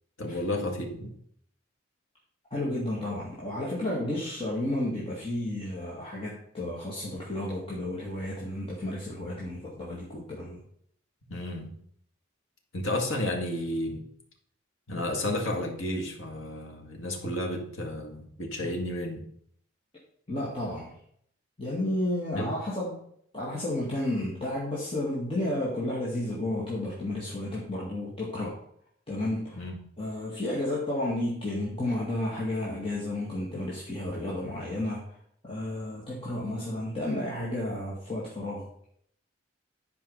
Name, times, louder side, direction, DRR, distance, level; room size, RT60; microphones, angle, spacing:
voice 1, 0.2-1.1 11.3-11.7 12.7-14.0 14.9-19.3 22.3-22.5 29.5-29.8, left 1 dB, 80° left, 2 dB, 1.9 m, -32 dB
voice 2, 2.5-10.6 20.3-20.9 21.6-23.0 23.3-28.6 29.1-29.6 30.0-35.0 35.4-38.7, left 1 dB, 30° left, -6 dB, 1.9 m, -32 dB
10.5 x 4.8 x 5.5 m, 0.66 s
head